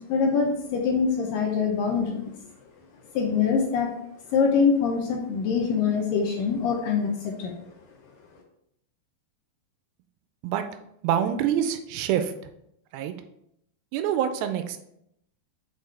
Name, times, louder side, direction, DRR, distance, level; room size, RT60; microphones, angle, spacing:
voice 1, 0.1-2.3 3.2-3.9 4.3-7.5, left 5 dB, 80° left, 1 dB, 2.0 m, -24 dB
voice 2, 11.0-12.3 12.9-13.1 13.9-14.8, right 9 dB, 85° right, 8 dB, 2.2 m, -26 dB
7.4 x 4.1 x 3.3 m, 0.77 s
omnidirectional pair, 4.7 m